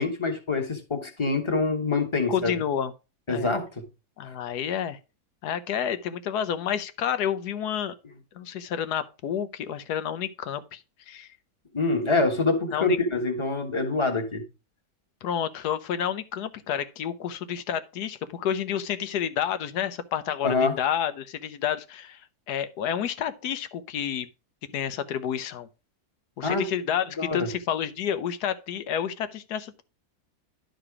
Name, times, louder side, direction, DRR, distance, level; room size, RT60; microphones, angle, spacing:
voice 1, 0.0-2.5 3.3-3.7 11.7-14.4 20.4-20.8 26.4-26.6 27.2-27.5, left 3 dB, 20° left, 1.3 m, -25 dB
voice 2, 2.3-2.9 3.3-3.5 4.2-5.0 5.4-7.9 8.3-10.8 11.1-11.3 12.7-13.0 15.2-22.2 22.5-24.3 24.7-25.7 26.4-29.8, left 9 dB, 80° left, 1.3 m, -29 dB
11.0 x 3.9 x 4.8 m
omnidirectional pair, 1.7 m